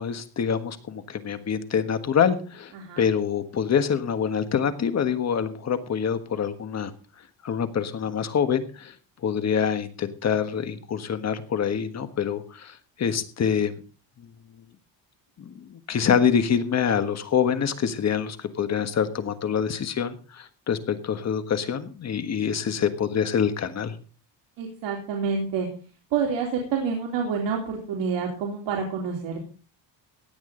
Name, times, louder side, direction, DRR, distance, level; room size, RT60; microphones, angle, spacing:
voice 1, 0.0-6.9 7.4-8.9 9.2-13.8 15.4-24.0, left 7 dB, 35° left, 10 dB, 1.5 m, -26 dB
voice 2, 2.7-3.1 24.6-25.7 26.1-29.4, right 5 dB, 70° right, 0 dB, 3.5 m, -28 dB
16.5 x 10.5 x 3.9 m, 0.37 s
cardioid pair, 155°, 44 cm